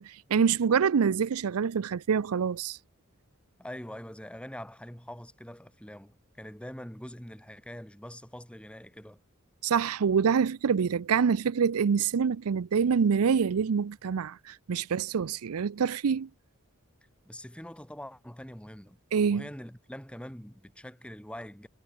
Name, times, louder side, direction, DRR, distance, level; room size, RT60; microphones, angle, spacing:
voice 1, 0.0-2.8 9.6-16.3 19.1-19.5, right 6 dB, 80° right, 0.5 m, -26 dB
voice 2, 3.6-9.2 17.3-19.0 19.3-21.7, equal, 5° left, 4.1 m, -44 dB
head